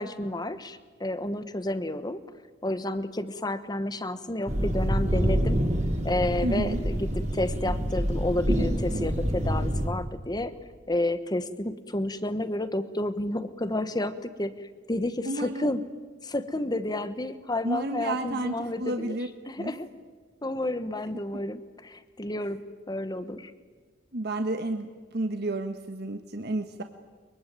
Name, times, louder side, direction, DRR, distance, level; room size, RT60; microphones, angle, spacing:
voice 1, 0.0-2.2 2.6-5.7 6.0-10.6 10.9-15.9 16.2-19.2 19.5-19.9 20.4-23.5, left 1 dB, 20° left, 11 dB, 1.1 m, -31 dB
sound 1, 4.5-9.9, equal, 35° right, 3.0 m, -27 dB
voice 2, 6.4-6.8 15.2-15.7 17.6-19.3 19.6-19.7 24.1-26.8, right 1 dB, 55° right, 7 dB, 1.3 m, -31 dB
23.0 x 23.0 x 9.4 m, 1.4 s
head